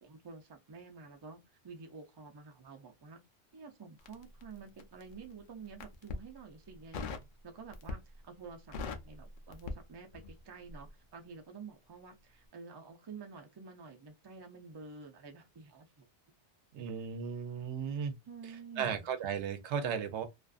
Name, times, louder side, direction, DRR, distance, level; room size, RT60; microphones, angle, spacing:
voice 1, 0.0-3.2 3.5-16.0 16.8-16.9 18.3-19.1, right 5 dB, 35° right, 0.4 m, -50 dB
Crackle, 4.0-5.1 5.7-6.3 6.9-7.3 7.7-8.2 8.5-10.4 10.7-10.9, left 4 dB, 60° left, 0.6 m, -41 dB
voice 2, 16.7-18.1 18.8-20.2, right 7 dB, 90° right, 0.9 m, -35 dB
2.5 x 2.4 x 2.3 m
omnidirectional pair, 1.1 m